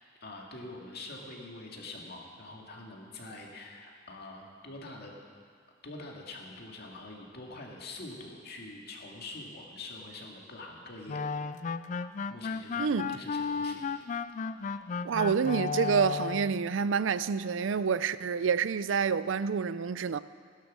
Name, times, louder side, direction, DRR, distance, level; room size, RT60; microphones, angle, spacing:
voice 1, 0.2-5.1 5.8-11.3 12.3-13.9 14.6-14.8, left 2 dB, 55° left, 2.1 m, -45 dB
sound 1, 11.1-16.6, left 5 dB, 40° left, 0.4 m, -34 dB
voice 2, 12.8-13.2 15.0-20.2, right 6 dB, 75° right, 0.4 m, -28 dB
16.5 x 11.5 x 6.3 m
head